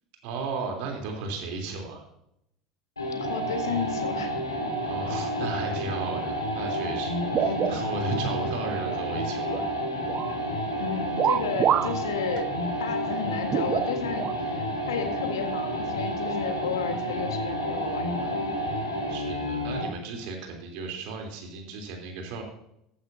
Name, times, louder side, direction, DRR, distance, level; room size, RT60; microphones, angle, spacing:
voice 1, 0.2-2.0 4.8-9.6 19.1-22.4, right 3 dB, 60° right, 2 dB, 3.4 m, -35 dB
sound 1, 3.0-20.0, equal, 90° left, 2.6 m, -30 dB
voice 2, 3.1-4.3 7.5-7.8 10.8-12.5 12.8-18.5, left 6 dB, 75° left, 7 dB, 1.6 m, -33 dB
sound 2, 7.2-8.3 8.6-9.7 10.1-10.4 11.2-12.0 12.4-12.5 13.5-14.3 15.2-15.3 16.2-16.4, right 10 dB, 40° right, 0.5 m, -27 dB
14.5 x 12.0 x 2.7 m, 0.76 s
figure-of-eight pair, 75°, 2 cm